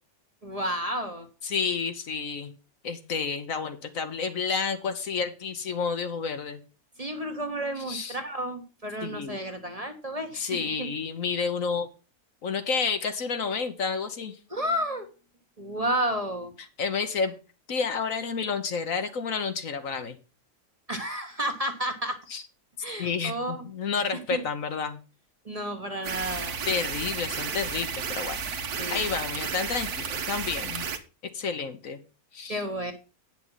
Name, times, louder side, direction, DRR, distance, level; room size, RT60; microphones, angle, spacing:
voice 1, 0.4-1.3 7.0-10.9 14.5-15.1 15.6-16.5 20.9-22.2 22.8-23.7 24.1-24.4 25.4-26.6 28.8-29.0 32.5-32.9, right 1 dB, 25° right, 5 dB, 1.2 m, -31 dB
voice 2, 1.4-2.5 2.8-6.6 7.9-8.2 9.0-9.4 10.3-11.9 12.4-14.4 16.8-17.3 17.7-20.2 22.3-22.4 23.0-25.0 26.6-28.4 28.9-30.8 31.3-32.0 32.3-32.5, left 5 dB, 65° left, 8 dB, 1.4 m, -30 dB
sound 1, 26.0-31.0, right 6 dB, 80° right, 1.5 m, -32 dB
9.4 x 6.2 x 5.7 m, 0.33 s
omnidirectional pair, 1.6 m